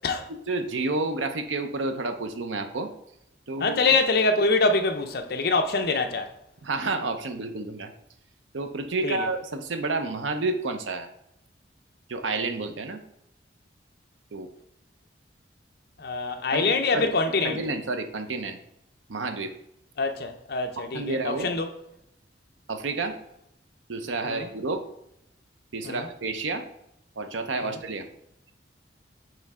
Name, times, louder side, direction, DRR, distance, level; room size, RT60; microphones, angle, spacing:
voice 1, 0.3-2.9 3.5-4.0 6.6-7.9 8.5-11.1 12.1-13.0 14.3-14.5 16.5-17.1 17.4-18.6 19.1-19.5 20.8-21.5 22.7-23.2 23.9-24.8 25.7-26.6 27.2-28.1, right 3 dB, 90° right, 0.7 m, -30 dB
voice 2, 3.6-6.3 9.0-9.3 16.0-17.6 20.0-21.7 24.2-24.5 25.8-26.1 27.6-27.8, left 3 dB, 55° left, 0.6 m, -25 dB
8.8 x 3.2 x 3.6 m
head